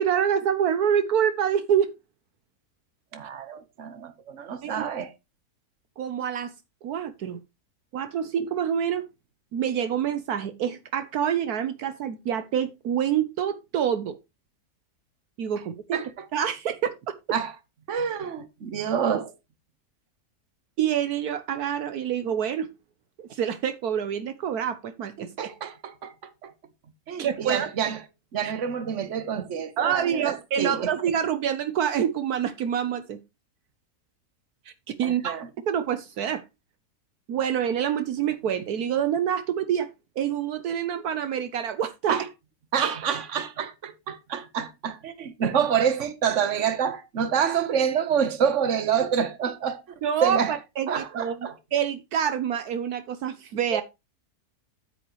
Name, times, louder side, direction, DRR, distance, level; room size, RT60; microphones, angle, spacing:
voice 1, 0.0-1.9 4.6-4.9 6.0-6.5 6.8-7.4 7.9-9.0 9.5-14.2 15.4-16.0 16.3-17.2 20.8-22.7 23.2-25.5 27.2-27.7 28.4-28.5 29.8-33.2 34.7-34.8 35.0-35.4 35.7-36.4 37.3-39.9 40.2-42.2 50.0-53.8, right 9 dB, 75° right, 1.3 m, -26 dB
voice 2, 3.1-5.1 15.9-16.2 17.3-17.5 17.9-19.3 25.2-26.1 26.4-26.5 27.1-28.0 28.3-30.9 35.0-35.5 42.1-42.3 42.7-49.8 50.2-50.5 50.9-51.5 53.7-53.8, right 7 dB, 50° right, 1.5 m, -27 dB
9.2 x 8.9 x 3.1 m
omnidirectional pair, 1.7 m